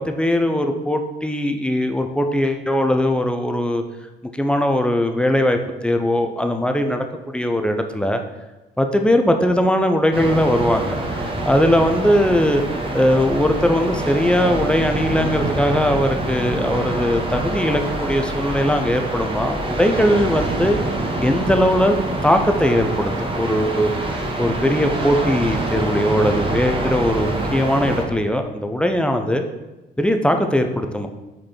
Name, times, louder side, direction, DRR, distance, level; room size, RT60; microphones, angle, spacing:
voice 1, 0.1-3.8 4.3-8.2 8.8-12.6 12.9-20.8 21.2-22.0 22.2-29.4 30.0-31.1, equal, 5° left, 5 dB, 0.6 m, -20 dB
sound 1, 10.1-28.0, right 2 dB, 25° right, 1.1 m, -25 dB
5.1 x 4.5 x 4.3 m, 1.1 s
cardioid pair, 90°, 20 cm